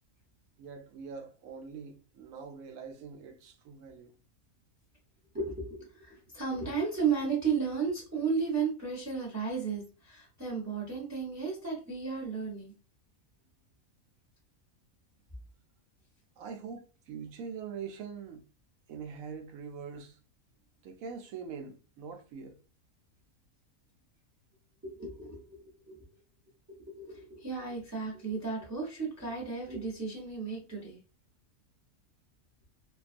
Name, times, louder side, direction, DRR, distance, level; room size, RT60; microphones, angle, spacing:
voice 1, 0.6-4.1 16.4-18.4 18.9-20.2 20.8-22.6, right 6 dB, 80° right, 1.0 m, -43 dB
voice 2, 5.3-12.7 24.8-25.6 25.9-26.0 26.7-31.0, right 5 dB, 15° right, 0.6 m, -34 dB
2.6 x 2.3 x 2.4 m
omnidirectional pair, 1.5 m